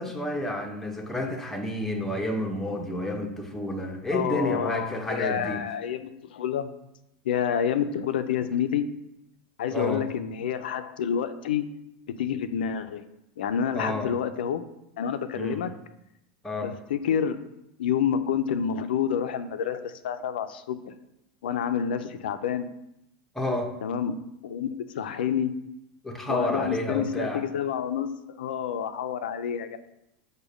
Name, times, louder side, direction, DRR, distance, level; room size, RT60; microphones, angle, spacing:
voice 1, 0.0-5.6 9.7-10.1 13.7-14.1 15.3-15.6 16.4-16.7 23.3-23.7 26.0-27.4, left 1 dB, 5° left, 2 dB, 0.7 m, -30 dB
voice 2, 4.1-6.7 7.3-8.8 9.6-11.6 12.2-13.0 13.4-14.6 15.0-15.7 16.6-17.5 17.8-20.9 21.4-22.7 23.8-24.2 24.4-24.7 24.9-25.5 26.3-28.1 28.4-29.8, left 8 dB, 90° left, 10 dB, 0.4 m, -28 dB
5.0 x 2.2 x 4.9 m, 0.84 s
supercardioid pair, 120°, 5 cm